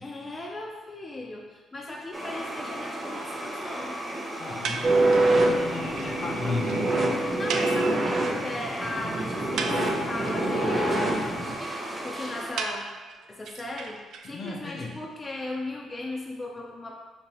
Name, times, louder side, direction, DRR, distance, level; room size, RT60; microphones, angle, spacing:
voice 1, 0.0-4.0 7.1-9.7 10.1-11.0 12.0-12.9 13.3-17.0, left 2 dB, 25° left, -1 dB, 0.5 m, -37 dB
sound 1, 2.1-12.5, right 1 dB, 20° right, 1.3 m, -35 dB
voice 2, 4.4-7.2 14.2-15.0, left 3 dB, 55° left, 1 dB, 0.8 m, -35 dB
sound 2, 4.6-5.4 5.7-5.8 6.0-6.1 6.4-6.5 6.7-6.8 7.5-8.5 8.8-8.9 9.3-10.3 12.6-14.5, right 5 dB, 75° right, 0.4 m, -35 dB
sound 3, 4.8-11.5, right 2 dB, 45° right, 0.7 m, -25 dB
5.4 x 2.9 x 3.0 m, 1.3 s
cardioid pair, 90°, 0 cm